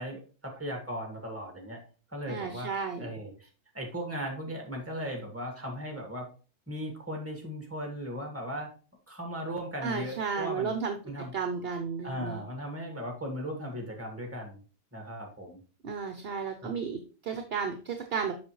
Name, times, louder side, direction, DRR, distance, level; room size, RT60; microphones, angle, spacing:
voice 1, 0.0-1.8 2.1-2.7 3.0-3.5 3.7-6.3 6.7-8.7 9.1-10.7 11.0-11.3 12.0-14.6 14.9-15.6 16.6-16.7, equal, 10° right, 2 dB, 1.7 m, -37 dB
voice 2, 2.3-3.1 9.8-11.0 11.3-12.4 15.8-18.3, right 6 dB, 55° right, 7 dB, 0.9 m, -33 dB
7.3 x 5.8 x 3.0 m, 0.36 s
omnidirectional pair, 1.3 m